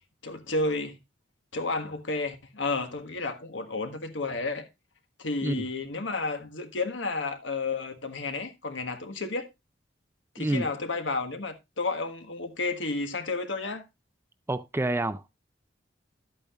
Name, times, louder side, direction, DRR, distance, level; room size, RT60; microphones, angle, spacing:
voice 1, 0.2-1.0 1.5-4.7 5.2-9.5 10.3-13.8, left 3 dB, 80° left, 1.4 m, -31 dB
voice 2, 14.5-15.3, right 2 dB, 15° right, 0.4 m, -28 dB
11.5 x 8.5 x 2.4 m
head